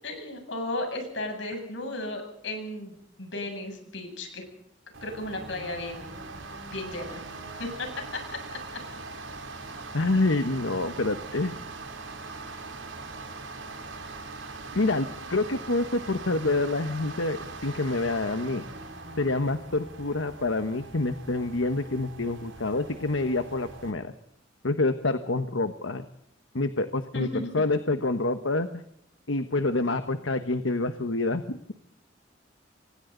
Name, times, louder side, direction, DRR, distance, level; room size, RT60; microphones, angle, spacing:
voice 1, 0.0-4.4 5.0-6.1 6.7-7.2 7.6-8.8 27.1-27.5, left 2 dB, 70° left, 4 dB, 7.8 m, -35 dB
sound 1, 4.9-23.9, right 3 dB, 80° right, 4.3 m, -41 dB
voice 2, 9.9-11.6 14.7-18.6 19.2-24.1 24.6-26.0 26.5-28.8 29.3-31.6, left 2 dB, 85° left, 9 dB, 1.2 m, -27 dB
28.0 x 24.5 x 4.0 m, 0.72 s
head